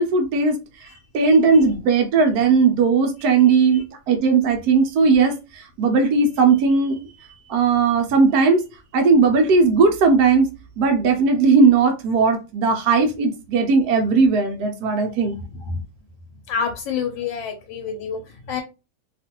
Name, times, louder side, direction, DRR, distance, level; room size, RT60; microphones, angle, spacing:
voice 1, 0.0-0.9 1.1-7.1 7.5-8.6 8.9-10.5 10.8-15.4, right 4 dB, 70° right, 3 dB, 1.0 m, -17 dB
voice 2, 0.8-1.6 3.2-3.8 15.4-15.8 16.5-18.6, left 6 dB, 90° left, 4 dB, 1.3 m, -30 dB
2.9 x 2.4 x 2.8 m, 0.29 s
omnidirectional pair, 2.0 m